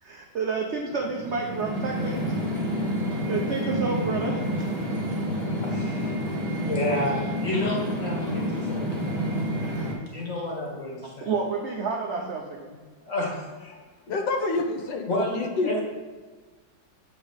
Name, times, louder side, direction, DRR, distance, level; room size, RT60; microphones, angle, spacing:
voice 1, 0.0-2.3 3.3-4.7 7.0-7.1 9.7-9.9 10.2-10.4 11.2-12.7, right 4 dB, 75° right, 0 dB, 0.6 m, -30 dB
sound 1, 0.9-9.9, equal, 25° right, 0.9 m, -29 dB
voice 2, 5.7-8.9 10.1-11.3 13.0-13.8 14.1-14.2 15.1-15.8, left 1 dB, 45° left, -2 dB, 1.8 m, -30 dB
voice 3, 14.1-15.1 15.4-15.8, left 3 dB, 75° left, 4 dB, 1.3 m, -27 dB
7.2 x 4.3 x 5.0 m, 1.4 s
omnidirectional pair, 2.0 m